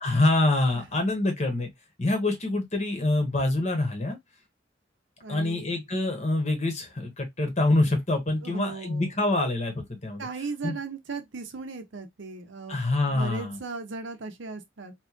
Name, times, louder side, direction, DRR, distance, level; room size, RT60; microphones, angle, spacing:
voice 1, 0.0-1.7 2.0-4.2 5.3-10.3 10.6-10.8 12.7-13.6, left 2 dB, 35° left, 1.1 m, -25 dB
voice 2, 5.2-5.7 8.4-9.2 10.2-12.8 13.0-14.9, right 4 dB, 70° right, 0.7 m, -37 dB
2.9 x 2.6 x 3.6 m
head